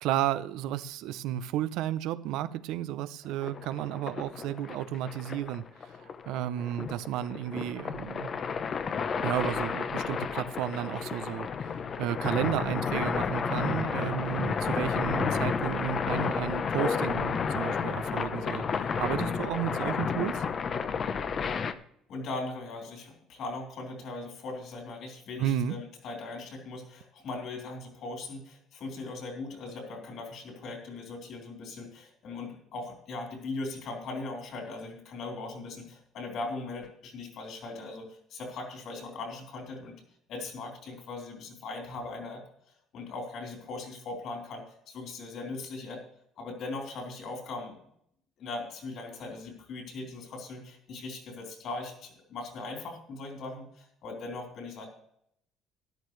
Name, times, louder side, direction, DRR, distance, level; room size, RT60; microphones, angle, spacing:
voice 1, 0.0-5.6 6.0-8.3 9.2-11.5 12.0-20.4 25.4-25.8, right 11 dB, 80° right, 0.6 m, -32 dB
sound 1, 3.4-21.7, left 6 dB, 35° left, 0.7 m, -31 dB
voice 2, 22.1-40.0 40.3-42.4 42.9-46.0 46.4-47.8 48.4-54.9, left 3 dB, 55° left, 3.8 m, -39 dB
13.0 x 11.5 x 3.2 m
cardioid pair, 150°, 0 cm